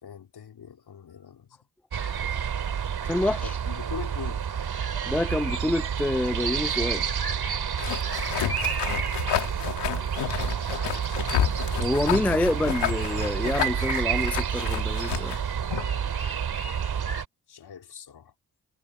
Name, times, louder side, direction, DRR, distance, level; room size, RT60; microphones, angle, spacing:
voice 1, 0.0-1.6 3.4-4.5 10.5-11.3 17.5-18.3, left 8 dB, 65° left, 3.4 m, -42 dB
sound 1, 1.9-17.2, right 8 dB, 65° right, 3.2 m, -29 dB
voice 2, 3.0-3.5 4.9-7.0 8.1-8.5 11.8-15.4, left 1 dB, 5° left, 0.4 m, -27 dB
sound 2, 7.8-16.0, left 12 dB, 85° left, 2.3 m, -31 dB
supercardioid pair, 50°, 41 cm